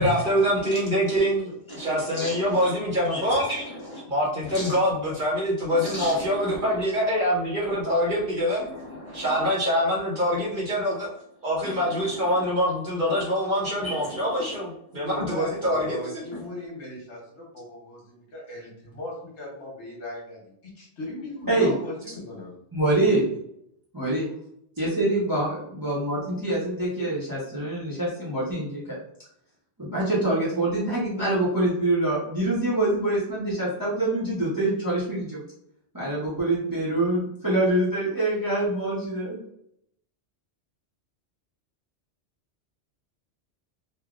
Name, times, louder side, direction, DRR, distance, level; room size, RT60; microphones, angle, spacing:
voice 1, 0.0-3.5 4.1-8.6 9.1-11.1 11.4-16.1, equal, 50° right, -5 dB, 1.0 m, -25 dB
voice 2, 1.7-2.7 3.1-4.0 4.4-4.8 5.7-6.7 8.6-9.5 11.6-12.4 13.1-13.2 13.8-14.5 16.3-16.4, equal, 25° left, -6 dB, 1.1 m, -35 dB
voice 3, 15.0-22.5, left 1 dB, 75° left, -3 dB, 1.4 m, -38 dB
voice 4, 22.7-23.2 23.9-24.3 24.8-29.0 29.8-35.4 35.9-39.4, right 2 dB, 20° right, -7 dB, 0.7 m, -25 dB
3.3 x 2.2 x 2.4 m, 0.72 s
omnidirectional pair, 1.2 m